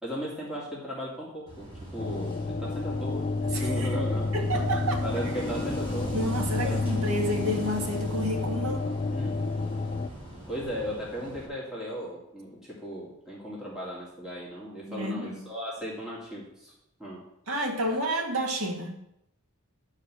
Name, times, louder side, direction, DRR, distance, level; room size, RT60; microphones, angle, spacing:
voice 1, 0.0-4.6 5.0-6.1 6.6-6.8 9.1-9.4 10.5-16.7 17.0-17.2 17.9-18.0, equal, 5° right, -7 dB, 2.5 m, -36 dB
Wind / Waves surf, 1.5-11.5, right 1 dB, 30° right, 3.7 m, -40 dB
sound 1, 2.0-10.1, left 3 dB, 35° left, 0.4 m, -30 dB
voice 2, 3.5-3.9 4.3-5.0 6.1-8.9 14.9-15.4 17.5-19.0, equal, 75° right, 2 dB, 1.9 m, -30 dB
11.5 x 4.9 x 7.5 m, 0.81 s
head